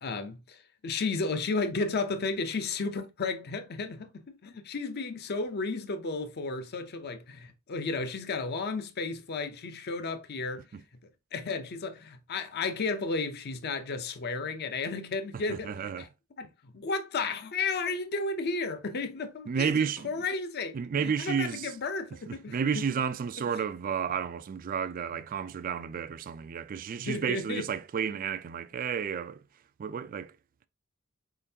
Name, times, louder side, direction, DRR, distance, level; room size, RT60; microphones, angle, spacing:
voice 1, 0.0-10.7 11.3-16.1 16.4-22.6 27.0-27.7, left 3 dB, 50° left, 0.6 m, -33 dB
voice 2, 15.5-16.1 19.5-20.1 20.7-21.7 22.3-29.4 29.8-30.3, right 6 dB, 40° right, 0.3 m, -31 dB
4.2 x 3.8 x 2.7 m
head